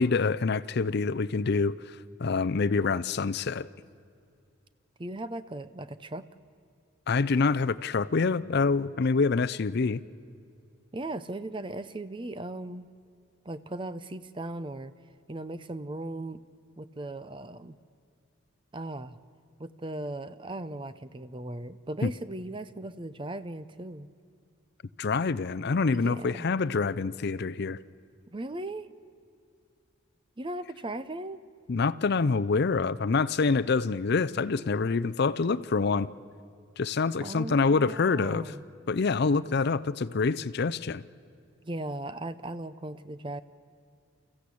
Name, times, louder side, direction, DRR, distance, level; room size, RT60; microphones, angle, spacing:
voice 1, 0.0-3.7 7.1-10.0 22.0-22.1 25.0-27.8 31.7-36.1 36.8-38.5 38.9-41.0, left 4 dB, 50° left, 16 dB, 0.5 m, -26 dB
voice 2, 5.0-6.3 10.9-12.9 13.4-14.9 15.3-16.4 16.8-17.7 18.7-19.2 19.6-24.1 25.9-26.5 28.3-28.9 30.4-31.4 37.2-38.6 41.6-43.4, right 2 dB, 25° right, 13 dB, 0.6 m, -37 dB
30.0 x 15.0 x 8.5 m, 2.3 s
head